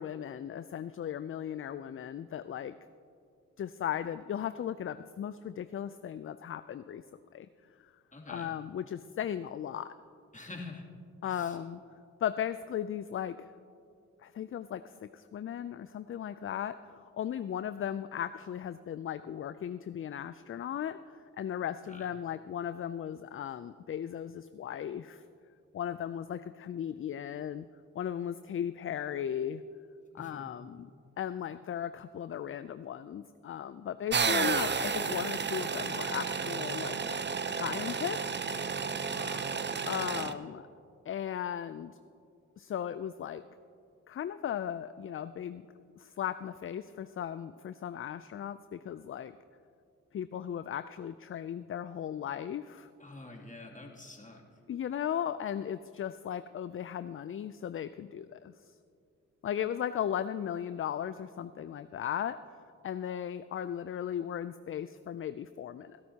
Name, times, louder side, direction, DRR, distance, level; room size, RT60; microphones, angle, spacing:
voice 1, 0.0-2.7 3.6-7.5 7.8-7.9 8.3-9.9 11.2-11.8 12.2-13.5 14.2-25.2 25.7-27.7 28.0-29.6 30.1-30.9 31.2-37.0 37.6-38.3 38.9-39.2 39.9-40.7 41.1-42.0 42.6-43.4 44.1-45.6 46.0-49.3 50.1-52.9 54.7-58.7 59.4-66.0, left 9 dB, 45° left, 13 dB, 0.4 m, -37 dB
voice 2, 8.1-8.5 10.3-10.8 11.2-11.6 21.9-22.1 30.1-30.5 39.1-39.6 53.0-54.4, left 2 dB, 25° left, -2 dB, 2.6 m, -47 dB
sound 1, 34.1-40.3, right 5 dB, 35° right, 0.7 m, -32 dB
20.5 x 12.0 x 2.9 m, 2.4 s
supercardioid pair, 50°, 31 cm